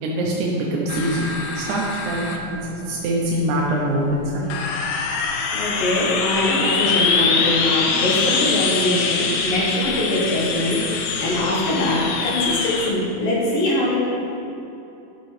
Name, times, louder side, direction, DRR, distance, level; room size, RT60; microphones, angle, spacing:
voice 1, 0.0-4.5 7.3-7.5, right 1 dB, 75° right, -3 dB, 1.8 m, -24 dB
sound 1, 0.9-12.9, left 5 dB, 90° left, 1.7 m, -24 dB
voice 2, 5.5-14.0, left 1 dB, 70° left, -4 dB, 3.1 m, -22 dB
11.0 x 6.6 x 3.3 m, 2.8 s
omnidirectional pair, 4.2 m